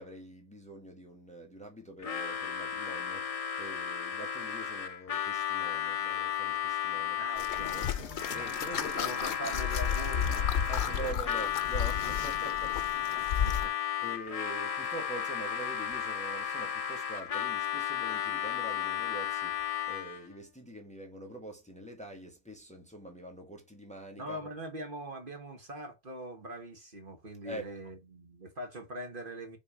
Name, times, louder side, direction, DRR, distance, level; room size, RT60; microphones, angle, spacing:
voice 1, 0.0-3.3 3.6-7.2 8.3-9.2 10.7-12.7 13.1-13.6 14.0-24.4 27.4-27.7, right 1 dB, 5° left, 1.3 m, -44 dB
Harmonica, 2.0-20.3, left 9 dB, 45° left, 0.5 m, -34 dB
voice 2, 7.2-11.2 11.8-12.5 13.2-13.7 14.3-14.5 24.2-29.6, right 1 dB, 55° right, 1.6 m, -43 dB
sound 1, 7.4-13.7, left 8 dB, 85° left, 1.0 m, -33 dB
5.4 x 3.5 x 5.0 m
omnidirectional pair, 1.1 m